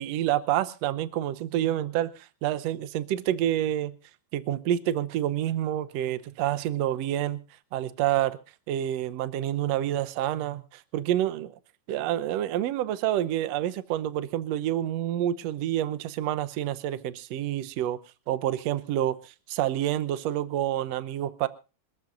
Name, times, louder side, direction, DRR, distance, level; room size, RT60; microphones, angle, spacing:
voice 1, 0.0-3.9 4.3-7.4 7.7-8.4 8.7-11.6 11.9-18.0 18.3-21.5, right 12 dB, 70° right, 1.6 m, -28 dB
26.5 x 13.5 x 2.6 m
omnidirectional pair, 3.9 m